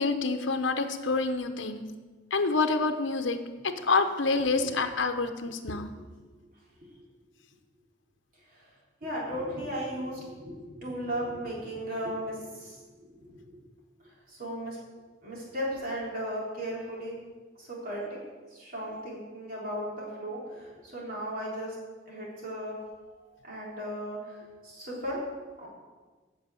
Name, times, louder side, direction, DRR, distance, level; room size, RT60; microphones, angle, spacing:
voice 1, 0.0-1.8 2.3-5.9, left 3 dB, 70° left, 7 dB, 0.9 m, -27 dB
voice 2, 6.4-7.1 8.5-8.7 9.0-13.6 14.0-14.8 15.2-17.2 17.6-18.2 18.5-21.8 22.1-22.8 23.2-25.2 25.6-25.7, equal, 45° right, -5 dB, 3.5 m, -36 dB
9.0 x 6.7 x 8.3 m, 1.4 s
head